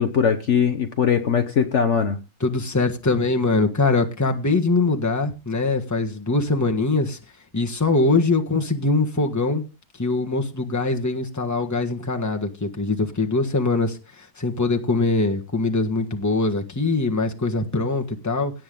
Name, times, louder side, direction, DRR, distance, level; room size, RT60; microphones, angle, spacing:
voice 1, 0.0-2.2, left 7 dB, 55° left, 8 dB, 1.2 m, -20 dB
voice 2, 2.4-7.2 7.5-9.6 10.0-18.5, left 3 dB, 10° left, 3 dB, 1.4 m, -22 dB
17.5 x 7.8 x 3.8 m, 0.29 s
omnidirectional pair, 1.6 m